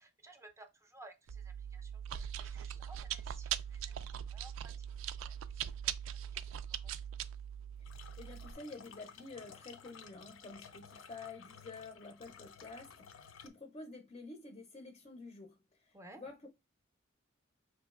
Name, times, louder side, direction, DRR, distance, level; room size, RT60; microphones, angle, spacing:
voice 1, 0.0-6.9 15.9-16.2, right 2 dB, 15° right, 0.5 m, -58 dB
Chewing mastication, 1.3-8.5, right 9 dB, 80° right, 0.3 m, -41 dB
sound 1, 7.8-13.5, left 7 dB, 80° left, 0.5 m, -55 dB
voice 2, 8.2-15.6 15.9-16.5, left 3 dB, 30° left, 0.5 m, -50 dB
5.1 x 3.0 x 2.3 m
head